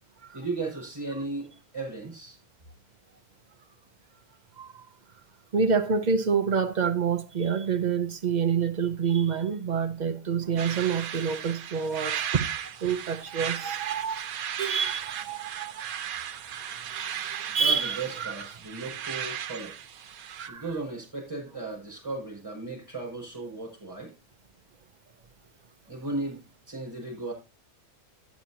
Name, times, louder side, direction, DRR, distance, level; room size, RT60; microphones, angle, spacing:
voice 1, 0.3-2.4 17.5-19.7 20.5-24.1 25.9-27.3, right 2 dB, 15° right, 6.4 m, -36 dB
voice 2, 5.5-12.5 12.8-14.3 14.6-15.9 16.3-18.3 20.3-20.6, right 6 dB, 40° right, 0.7 m, -28 dB
sound 1, 10.6-20.5, right 9 dB, 85° right, 1.2 m, -36 dB
11.5 x 10.0 x 2.9 m
omnidirectional pair, 1.5 m